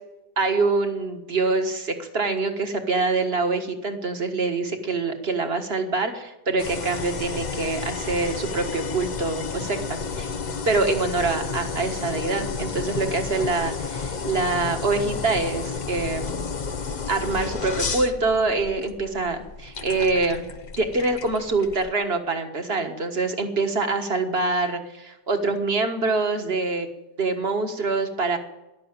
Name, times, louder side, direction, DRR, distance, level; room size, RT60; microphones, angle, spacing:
voice 1, 0.4-10.3 10.7-16.3 17.1-20.4 20.8-26.9 27.2-28.4, right 3 dB, 35° right, 6 dB, 1.7 m, -25 dB
sound 1, 6.6-21.9, left 5 dB, 40° left, 0.6 m, -32 dB
14.0 x 11.5 x 9.0 m, 0.99 s
omnidirectional pair, 1.8 m